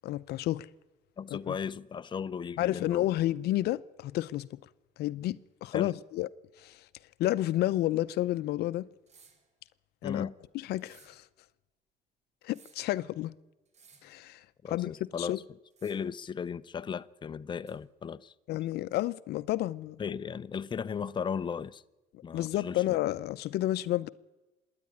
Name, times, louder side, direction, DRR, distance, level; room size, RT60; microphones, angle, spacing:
voice 1, 0.0-0.7 1.3-1.5 2.6-4.5 5.0-6.3 6.6-6.8 7.2-8.9 10.0-10.3 10.7-11.2 12.4-13.3 14.0-14.4 14.7-14.9 15.2-15.4 18.5-20.0 22.3-24.1, left 15 dB, 75° left, 0.6 m, -30 dB
voice 2, 1.2-3.1 5.7-5.9 10.0-10.3 14.6-15.4 15.8-18.6 20.0-21.8 22.2-23.0, left 7 dB, 30° left, 0.6 m, -36 dB
sound 1, 9.1-9.5 10.8-11.2 12.4-12.9 13.7-14.2 15.7-16.2 17.7-17.8, right 5 dB, 40° right, 3.3 m, -60 dB
26.0 x 10.5 x 9.8 m
cardioid pair, 110°, 17 cm